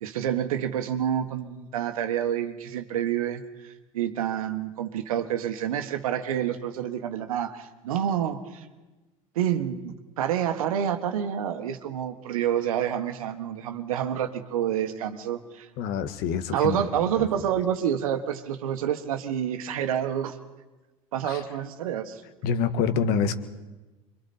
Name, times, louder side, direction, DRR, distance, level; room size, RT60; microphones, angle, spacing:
voice 1, 0.0-8.7 9.3-15.7 16.5-20.4 21.1-22.2, right 9 dB, 80° right, 8 dB, 1.5 m, -28 dB
voice 2, 15.8-16.9 21.2-21.4 22.4-23.4, left 6 dB, 60° left, 9 dB, 1.6 m, -26 dB
25.5 x 23.5 x 4.4 m, 1.2 s
hypercardioid pair, 80°, 18 cm